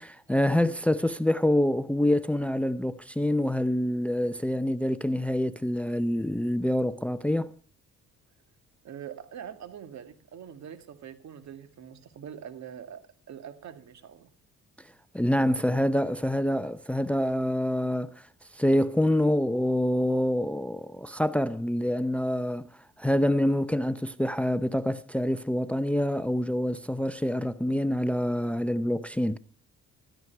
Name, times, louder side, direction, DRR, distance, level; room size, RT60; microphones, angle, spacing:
voice 1, 0.0-7.5 15.1-18.2 18.5-22.7 23.0-29.4, left 1 dB, 5° left, 0.6 m, -26 dB
voice 2, 8.8-13.0 13.3-14.3, right 9 dB, 65° right, 2.0 m, -43 dB
15.5 x 13.0 x 4.6 m
cardioid pair, 90°, 30 cm